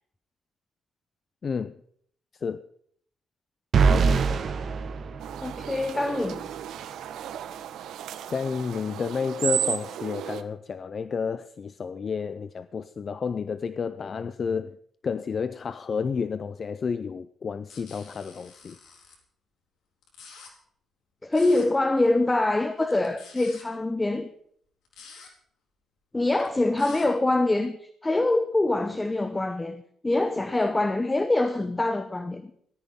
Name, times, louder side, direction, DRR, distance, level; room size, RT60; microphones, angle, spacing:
voice 1, 1.4-1.7 2.4-2.7 8.3-14.8 15.0-18.8, left 5 dB, 40° left, 0.5 m, -30 dB
sound 1, 3.7-5.9, right 5 dB, 50° right, 1.2 m, -23 dB
sound 2, 5.2-10.4, right 10 dB, 85° right, 1.0 m, -34 dB
voice 2, 5.4-6.4 21.2-24.3 26.1-32.5, left 2 dB, 15° left, 0.8 m, -25 dB
sound 3, 17.7-19.1 20.0-20.5 21.3-21.7 22.9-23.6 24.8-25.3 26.4-27.1, left 5 dB, 90° left, 4.4 m, -47 dB
18.0 x 14.0 x 3.7 m
cardioid pair, 135°, 0 cm